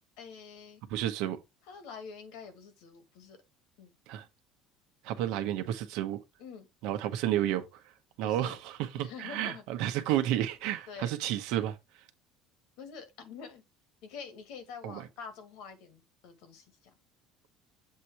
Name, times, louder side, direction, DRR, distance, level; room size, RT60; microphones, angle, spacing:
voice 1, 0.2-0.8 1.7-3.4 3.8-3.9 6.4-6.7 8.2-8.6 8.9-9.6 10.9-11.1 12.8-13.6 14.0-16.9, left 6 dB, 75° left, 1.8 m, -46 dB
voice 2, 0.9-1.4 4.1-4.2 5.0-6.2 6.8-7.7 8.2-11.7 14.8-15.0, right 12 dB, 75° right, 1.0 m, -31 dB
7.5 x 2.9 x 4.6 m
cardioid pair, 130°, 0 cm